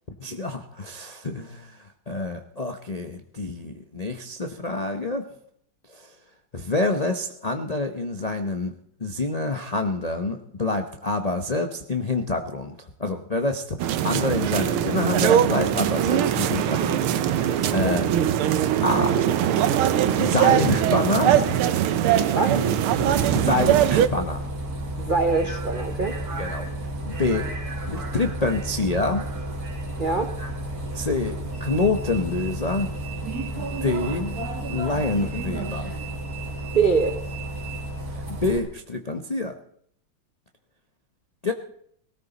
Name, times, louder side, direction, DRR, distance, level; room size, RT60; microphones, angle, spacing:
voice 1, 0.2-1.8 2.1-5.3 5.9-6.1 6.5-8.7 9.0-18.1 18.8-19.2 20.2-21.6 22.5-22.7 23.0-24.5 26.4-26.6 27.1-27.5 27.9-29.2 30.9-32.9 33.5-34.3 34.7-36.0 38.1-39.6 41.4-41.5, left 2 dB, 75° left, 4 dB, 0.3 m, -27 dB
sound 1, 13.8-24.1, right 10 dB, 90° right, 1.7 m, -21 dB
Bus, 23.0-38.6, right 1 dB, 45° right, 2.8 m, -32 dB
voice 2, 25.0-26.2 30.0-30.3 36.7-37.2, right 4 dB, 65° right, 6 dB, 0.5 m, -23 dB
19.0 x 17.5 x 4.1 m, 0.64 s
omnidirectional pair, 2.3 m